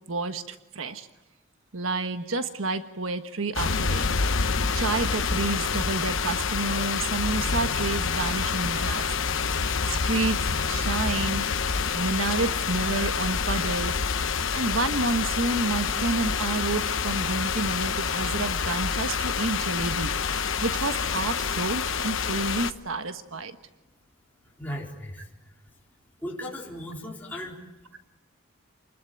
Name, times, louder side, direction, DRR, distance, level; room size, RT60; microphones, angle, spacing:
voice 1, 0.1-1.1 1.7-9.2 9.5-11.5 11.9-14.0 14.5-23.6, right 3 dB, 75° right, 8 dB, 1.4 m, -30 dB
sound 1, 3.5-22.7, left 5 dB, 70° left, 1.0 m, -27 dB
voice 2, 24.6-25.7 26.2-27.6, left 1 dB, 10° left, -4 dB, 4.3 m, -37 dB
28.5 x 21.0 x 9.4 m, 1.0 s
head